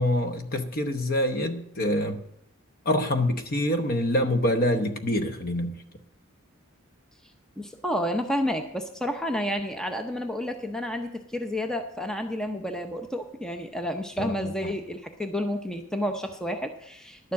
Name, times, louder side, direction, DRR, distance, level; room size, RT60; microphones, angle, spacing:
voice 1, 0.0-2.2 2.8-5.8 14.2-14.8, left 1 dB, 40° left, 8 dB, 0.9 m, -26 dB
voice 2, 7.6-17.3, equal, 5° left, 6 dB, 0.6 m, -30 dB
11.5 x 7.1 x 7.3 m, 0.75 s
head